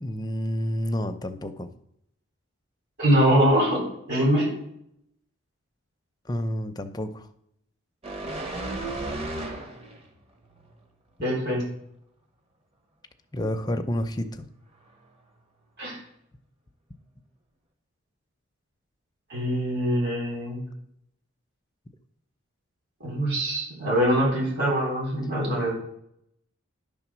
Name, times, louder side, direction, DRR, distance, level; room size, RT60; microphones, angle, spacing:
voice 1, 0.0-1.7 6.3-7.3 13.3-14.4, equal, 20° left, 7 dB, 0.5 m, -29 dB
voice 2, 3.0-4.5 11.2-11.6 15.8-16.0 19.3-20.6 23.0-25.7, equal, 50° right, -4 dB, 3.9 m, -23 dB
sound 1, 8.0-10.1 10.5-10.7, right 2 dB, 30° right, 1.0 m, -33 dB
11.0 x 3.6 x 6.1 m, 0.75 s
head